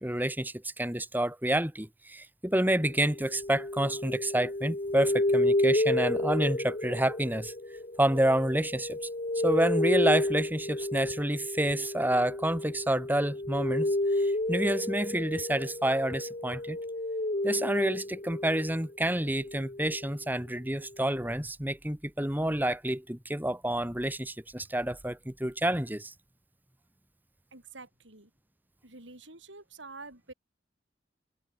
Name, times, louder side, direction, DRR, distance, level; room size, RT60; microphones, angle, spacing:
voice 1, 0.0-7.5 8.0-9.0 9.4-16.8 17.4-26.1, right 1 dB, 10° right, 2.1 m, -29 dB
sound 1, 2.6-18.9 19.3-20.1, left 1 dB, 35° left, 1.4 m, -31 dB
voice 2, 27.5-28.3 28.8-30.3, right 3 dB, 85° right, 7.3 m, -47 dB
head